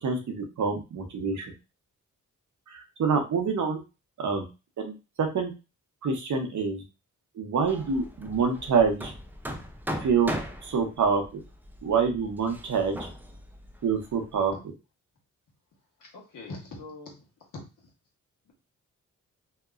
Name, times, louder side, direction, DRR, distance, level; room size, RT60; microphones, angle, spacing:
voice 1, 0.0-1.5 2.7-3.8 4.2-4.4 4.8-5.5 6.0-6.8 7.4-9.1 10.0-10.3 10.6-11.4 11.8-13.0 13.8-14.5, right 5 dB, 65° right, 3 dB, 0.8 m, -26 dB
Hammer, 7.6-14.5, equal, 5° right, 0.4 m, -39 dB
voice 2, 16.0-17.2 17.5-17.6 18.5-18.6, left 2 dB, 80° left, 0 dB, 1.1 m, -42 dB
2.9 x 2.1 x 2.4 m, 0.28 s
cardioid pair, 70°, 32 cm